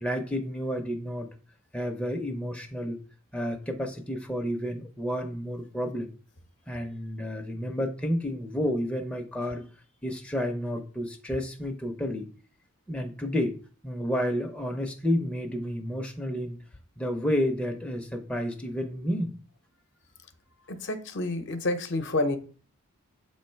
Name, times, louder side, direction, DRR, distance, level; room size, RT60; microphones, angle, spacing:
voice 1, 0.0-1.3 1.7-3.0 3.3-6.1 6.7-9.6 10.0-12.3 12.9-13.5 13.8-16.6 17.0-19.3, equal, 5° left, 0.5 m, -30 dB
voice 2, 20.7-22.4, left 2 dB, 55° left, 0.6 m, -29 dB
7.2 x 3.1 x 4.4 m
head